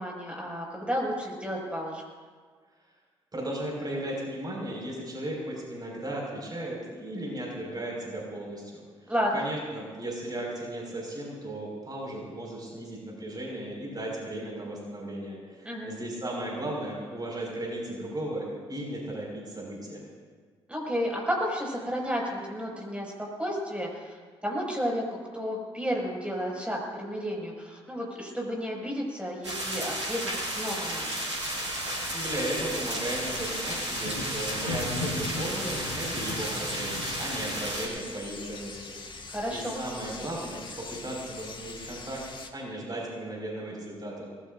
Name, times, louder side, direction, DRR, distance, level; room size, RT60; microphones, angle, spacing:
voice 1, 0.0-2.0 9.1-9.4 15.6-15.9 20.7-31.1 39.3-39.8, equal, 10° right, -2 dB, 6.3 m, -32 dB
voice 2, 3.3-20.1 32.1-42.2 42.5-44.3, right 1 dB, 30° right, -2 dB, 5.7 m, -36 dB
sound 1, 29.4-37.9, equal, 85° right, 2.3 m, -32 dB
sound 2, 32.2-42.5, left 3 dB, 35° left, 1.9 m, -43 dB
24.5 x 20.0 x 2.7 m, 1.5 s
figure-of-eight pair, 40°, 14 cm